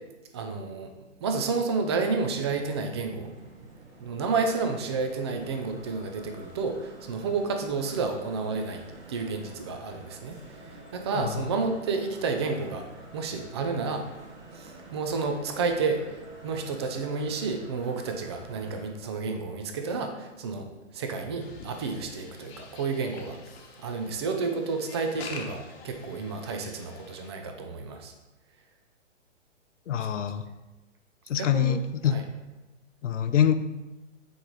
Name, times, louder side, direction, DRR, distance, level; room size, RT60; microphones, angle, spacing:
voice 1, 0.3-0.9 1.2-3.3 4.0-8.8 9.1-12.8 13.1-14.0 14.5-16.0 16.4-23.4 23.8-28.1 31.3-32.2, right 4 dB, 25° right, 5 dB, 0.4 m, -30 dB
sound 1, 2.0-18.9, right 2 dB, 60° right, 2.4 m, -48 dB
sound 2, 21.4-27.3, left 4 dB, 55° left, 1.2 m, -46 dB
voice 2, 29.9-30.4 31.3-32.2 33.0-33.5, left 9 dB, 75° left, 11 dB, 0.6 m, -25 dB
9.3 x 3.3 x 3.9 m, 1.1 s
hypercardioid pair, 145°, 37 cm